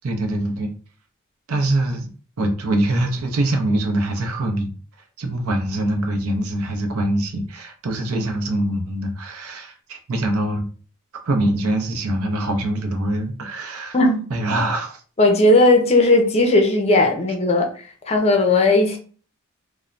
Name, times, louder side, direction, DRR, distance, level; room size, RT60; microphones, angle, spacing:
voice 1, 0.0-0.7 1.5-2.1 2.4-4.7 5.2-10.7 11.2-14.0 14.3-15.0, right 1 dB, 75° right, 0.6 m, -23 dB
voice 2, 15.2-17.7 18.1-19.0, left 2 dB, 30° left, 0.5 m, -16 dB
3.0 x 2.1 x 2.5 m
head